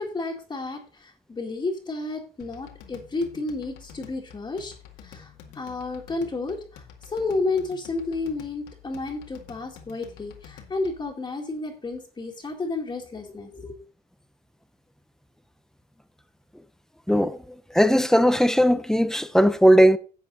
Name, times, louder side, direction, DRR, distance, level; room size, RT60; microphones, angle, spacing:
voice 1, 0.0-4.7 5.0-13.8, left 3 dB, 25° left, 2.0 m, -31 dB
sound 1, 2.4-11.1, left 8 dB, 85° left, 2.1 m, -48 dB
voice 2, 17.1-17.4 17.7-20.0, equal, 5° left, 0.7 m, -18 dB
11.5 x 7.7 x 4.0 m
cardioid pair, 110°, 17 cm